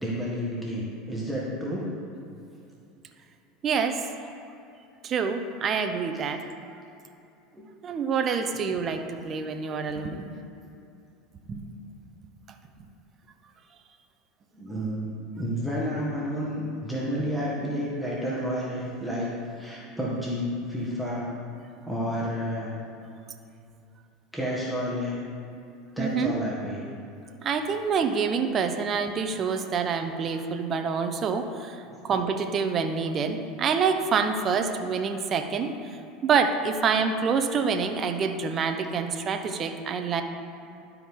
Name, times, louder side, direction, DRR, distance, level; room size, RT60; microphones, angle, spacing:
voice 1, 0.0-1.9 14.5-21.3 21.9-22.7 24.3-25.2 25.9-26.8 31.8-32.0, equal, ahead, -6 dB, 1.5 m, -30 dB
voice 2, 3.6-4.0 5.0-6.4 7.8-10.4 11.5-11.7 12.8-12.9 26.0-26.3 27.4-40.2, right 5 dB, 40° right, 6 dB, 0.7 m, -27 dB
12.0 x 4.6 x 3.7 m, 2.6 s
hypercardioid pair, 95°, 0 cm